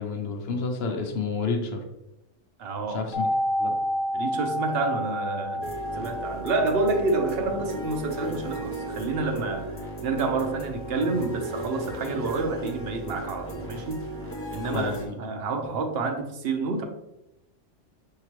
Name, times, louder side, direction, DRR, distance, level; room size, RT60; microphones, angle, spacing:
voice 1, 0.0-1.8 2.9-3.3 3.6-3.8 14.6-15.2, left 4 dB, 60° left, 3 dB, 0.7 m, -30 dB
voice 2, 2.6-3.2 4.1-14.0 14.5-16.8, right 3 dB, 60° right, 5 dB, 0.7 m, -29 dB
sound 1, 3.1-12.9 13.1-13.2, equal, 85° left, 1.3 m, -32 dB
sound 2, 5.6-15.1, right 1 dB, 20° left, 0.4 m, -36 dB
4.7 x 2.8 x 3.0 m, 0.89 s
omnidirectional pair, 1.3 m